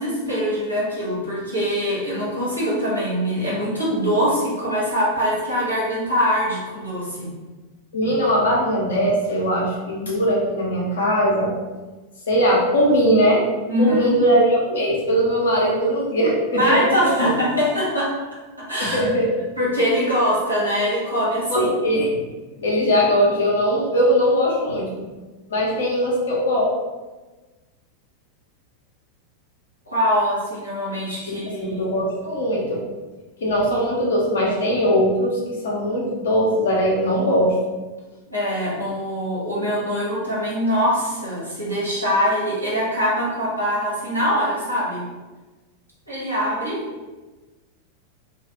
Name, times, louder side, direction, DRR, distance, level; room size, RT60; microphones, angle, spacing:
voice 1, 0.0-7.3 13.7-14.1 16.6-18.1 18.6-19.0 19.6-21.7 29.9-31.9 38.3-45.0 46.1-46.8, equal, 85° right, -7 dB, 1.0 m, -23 dB
voice 2, 7.9-11.5 12.3-13.4 13.8-17.1 18.8-19.3 21.5-22.2 22.6-24.9 25.5-26.7 31.3-32.8 33.4-35.4 35.6-37.5, equal, 65° left, -4 dB, 0.8 m, -20 dB
2.5 x 2.3 x 2.9 m, 1.2 s
figure-of-eight pair, 90°, 0 cm